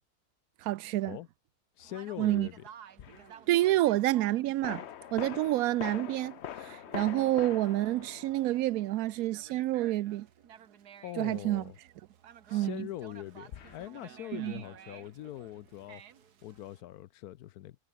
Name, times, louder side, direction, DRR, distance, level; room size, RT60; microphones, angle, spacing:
voice 1, 0.6-1.2 2.2-2.5 3.5-4.8 5.1-6.4 6.7-10.3 11.2-11.6 12.5-12.9 14.3-14.5, right 15 dB, 75° right, 1.0 m, -28 dB
voice 2, 1.8-2.6 11.0-11.8 12.5-16.0 16.4-17.8, left 14 dB, 75° left, 1.1 m, -42 dB
Conversation, 1.8-16.8, right 9 dB, 90° right, 1.8 m, -54 dB
sound 1, 3.0-3.3 4.6-9.1 13.5-13.9, left 10 dB, 55° left, 0.9 m, -43 dB
omnidirectional pair, 1.6 m